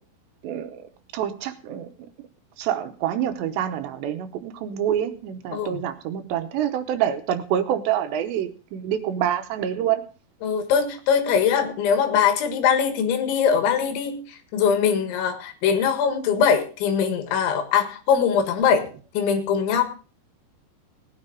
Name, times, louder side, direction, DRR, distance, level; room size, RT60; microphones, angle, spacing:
voice 1, 0.4-0.8 1.1-1.9 2.6-10.0, right 10 dB, 75° right, 9 dB, 3.1 m, -26 dB
voice 2, 10.4-18.8 19.2-19.8, left 7 dB, 85° left, 7 dB, 4.0 m, -22 dB
18.5 x 9.8 x 3.9 m, 0.37 s
omnidirectional pair, 5.2 m